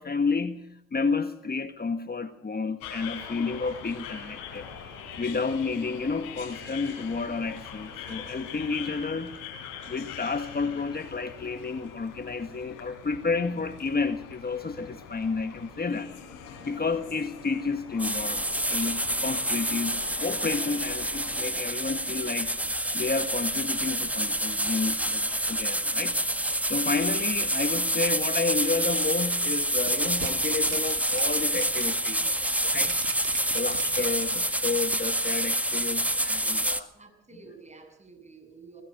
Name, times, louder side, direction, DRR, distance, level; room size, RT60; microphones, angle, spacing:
voice 1, 0.0-4.7 5.2-9.3 9.9-16.1 16.6-22.6 22.9-26.2 26.7-32.3 32.6-33.0 33.5-36.9, left 4 dB, 30° left, 9 dB, 1.5 m, -31 dB
sound 1, 2.8-21.5, left 7 dB, 90° left, 4.4 m, -43 dB
sound 2, 18.0-36.8, right 1 dB, 5° right, 1.8 m, -27 dB
sound 3, 29.8-31.8 32.2-32.3 32.8-34.5 34.9-35.0, right 15 dB, 90° right, 1.6 m, -40 dB
voice 2, 36.9-38.8, right 4 dB, 20° right, 5 dB, 7.7 m, -50 dB
21.5 x 20.0 x 6.7 m, 0.75 s
supercardioid pair, 55°, 33 cm